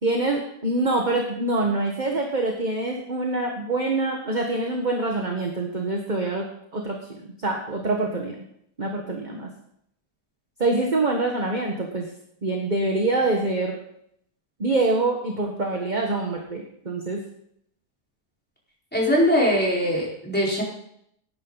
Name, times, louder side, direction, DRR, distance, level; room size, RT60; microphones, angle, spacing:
voice 1, 0.0-6.5 6.7-8.4 8.8-9.5 10.6-12.1 12.4-13.8 14.6-17.2, right 2 dB, 30° right, 1 dB, 1.6 m, -25 dB
voice 2, 18.9-20.6, equal, 5° left, -5 dB, 4.8 m, -21 dB
19.0 x 10.0 x 4.1 m, 0.71 s
omnidirectional pair, 1.7 m